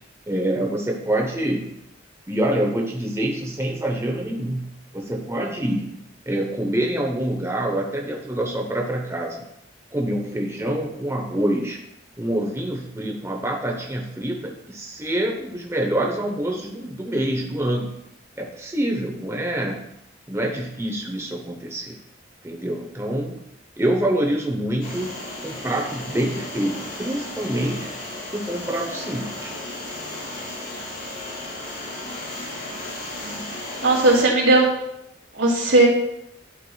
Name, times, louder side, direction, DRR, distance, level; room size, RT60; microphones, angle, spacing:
voice 1, 0.3-1.7 2.3-6.0 6.3-9.5 9.9-11.8 12.2-17.9 18.4-19.8 20.3-22.0 22.4-23.4 23.8-25.1 25.4-27.9 28.3-29.5, right 1 dB, 15° right, 0 dB, 0.8 m, -26 dB
sound 1, 24.8-34.3, left 1 dB, 50° left, 2.0 m, -34 dB
voice 2, 33.8-34.6 35.3-35.9, right 2 dB, 85° right, -3 dB, 2.5 m, -17 dB
11.5 x 4.9 x 2.3 m, 0.81 s
head